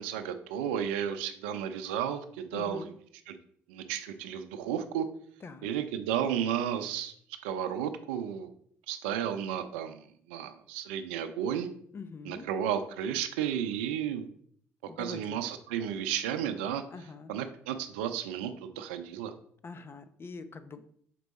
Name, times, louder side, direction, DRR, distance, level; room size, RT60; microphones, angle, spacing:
voice 1, 0.0-2.9 3.3-3.4 3.7-5.1 5.6-7.1 7.4-8.5 8.9-11.7 12.3-14.2 15.0-16.8 17.3-19.3, right 9 dB, 90° right, 10 dB, 0.5 m, -33 dB
voice 2, 2.5-2.9 5.4-5.7 11.9-12.5 14.9-15.4 16.9-17.3 19.6-20.9, left 4 dB, 40° left, 11 dB, 0.7 m, -44 dB
6.0 x 4.6 x 4.1 m, 0.63 s
hypercardioid pair, 55°, 6 cm